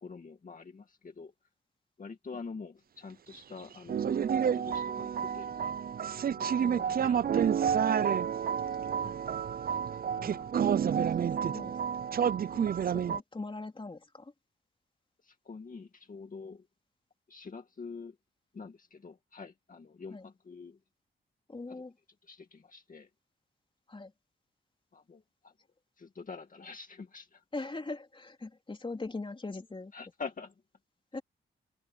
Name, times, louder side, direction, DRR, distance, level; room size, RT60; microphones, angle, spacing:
voice 1, 0.0-1.3 2.0-5.8 6.4-8.1 8.4-8.8 9.7-9.8 11.0-11.4 15.2-16.7 17.3-18.2 18.5-20.8 21.7-21.8 22.2-23.1 24.9-25.5 26.0-27.4 29.9-30.5, left 4 dB, 45° left, 2.1 m, -46 dB
sound 1, 3.9-13.2, right 8 dB, 50° right, 0.5 m, -29 dB
voice 2, 6.6-7.2 9.0-9.2 10.2-10.5 11.4-11.8 12.5-14.3 20.1-20.3 21.5-21.9 23.9-24.1 27.5-29.9 31.1-31.2, left 3 dB, 25° left, 3.2 m, -41 dB
cardioid pair, 85°, 19 cm